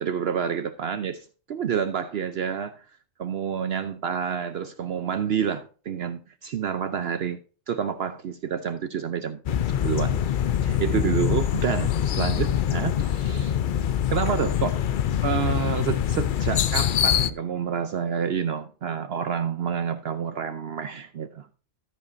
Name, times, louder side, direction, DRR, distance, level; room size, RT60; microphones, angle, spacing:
voice 1, 0.0-2.9 3.2-7.4 7.7-9.4 9.8-10.2 10.6-13.6 14.1-14.8 15.2-21.5, right 7 dB, 65° right, 0.9 m, -28 dB
sound 1, 9.5-17.3, left 9 dB, 55° left, 0.6 m, -24 dB
13.5 x 7.4 x 2.6 m
omnidirectional pair, 1.2 m